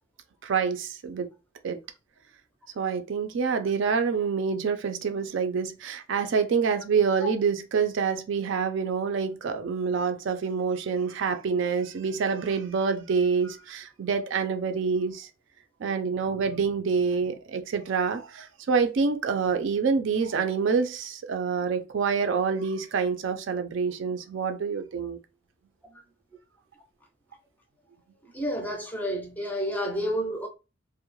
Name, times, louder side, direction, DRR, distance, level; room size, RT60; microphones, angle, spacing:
voice 1, 0.4-1.3 1.6-1.8 2.8-15.3 15.8-25.2, right 5 dB, 65° right, 0.4 m, -27 dB
voice 2, 28.3-30.5, equal, 10° left, 0.4 m, -30 dB
2.2 x 2.1 x 3.0 m
head